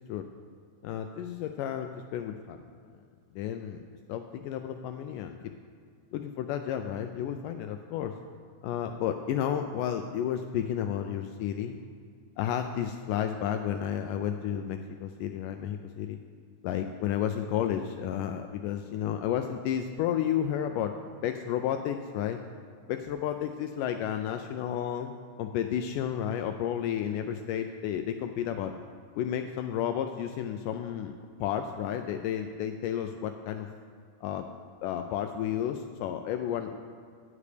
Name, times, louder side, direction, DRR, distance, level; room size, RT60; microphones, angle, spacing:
voice 1, 0.8-2.6 3.4-3.8 4.1-5.4 6.1-8.1 8.6-11.8 12.4-16.2 16.6-20.9 21.2-22.4 22.9-25.1 25.4-28.7 29.2-31.1 31.4-33.7 34.2-34.4 34.8-36.8, left 9 dB, 80° left, 6 dB, 1.9 m, -32 dB
15.0 x 11.0 x 3.4 m, 2.2 s
omnidirectional pair, 4.1 m